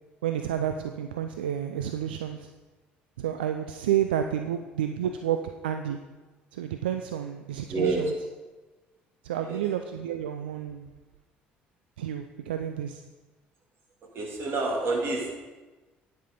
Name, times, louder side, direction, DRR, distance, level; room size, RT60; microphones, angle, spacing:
voice 1, 0.2-2.5 3.2-5.4 5.6-6.0 6.5-8.1 9.2-10.9 12.0-13.0, right 10 dB, 80° right, 7 dB, 0.4 m, -30 dB
voice 2, 7.7-8.1 9.4-9.6 14.1-15.4, right 3 dB, 50° right, 0 dB, 2.3 m, -28 dB
10.0 x 5.6 x 5.1 m, 1.2 s
hypercardioid pair, 55°, 5 cm